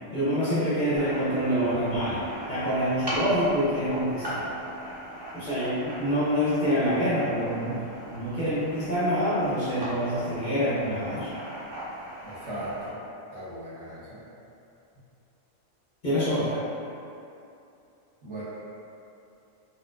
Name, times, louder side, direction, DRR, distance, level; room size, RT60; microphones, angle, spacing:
voice 1, 0.1-2.2 2.5-4.5 5.3-7.8 8.1-11.3 16.0-16.6, equal, 45° left, -11 dB, 0.7 m, -26 dB
sound 1, 1.0-12.9, equal, 30° right, 0.5 m, -39 dB
voice 2, 12.2-13.0 13.3-14.2 18.2-18.4, right 1 dB, 65° right, -11 dB, 1.4 m, -37 dB
4.0 x 2.3 x 2.4 m, 2.7 s
omnidirectional pair, 1.3 m